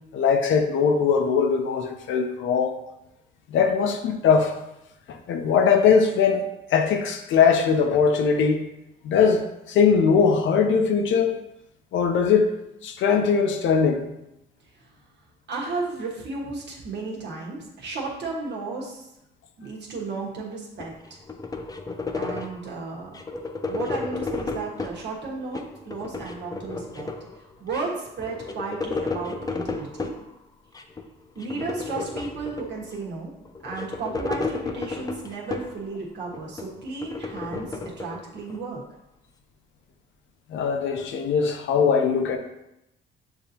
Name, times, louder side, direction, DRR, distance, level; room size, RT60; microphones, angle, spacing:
voice 1, 0.1-2.8 3.5-4.5 5.3-6.4 6.7-8.6 9.0-11.3 11.9-12.5 12.8-14.0 40.5-42.4, left 6 dB, 75° left, 0.6 m, -20 dB
voice 2, 15.5-19.1 19.6-21.2 22.1-23.2 23.7-27.1 27.6-30.1 31.3-33.3 33.6-38.8, right 3 dB, 60° right, 1.3 m, -34 dB
sound 1, 20.8-22.7 23.1-25.0 25.4-27.4 27.7-27.8 28.1-30.2 30.7-31.0 31.4-33.0 33.4-35.9 36.3-38.6, left 3 dB, 20° left, 0.4 m, -33 dB
6.8 x 2.7 x 2.8 m
cardioid pair, 90°, 20 cm